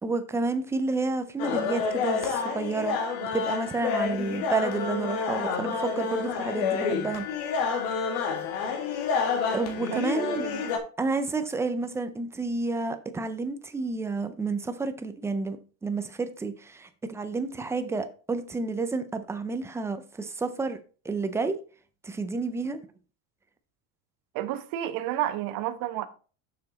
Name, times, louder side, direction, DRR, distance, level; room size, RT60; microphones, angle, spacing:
voice 1, 0.0-7.2 9.5-10.5 11.0-20.8 21.0-21.6 22.0-22.8, right 3 dB, 5° right, 0.3 m, -30 dB
sound 1, 1.4-10.8, left 6 dB, 75° left, 2.0 m, -29 dB
voice 2, 9.9-10.8 24.3-26.1, right 13 dB, 55° right, 1.0 m, -31 dB
6.9 x 6.6 x 4.0 m
cardioid pair, 160°, 42 cm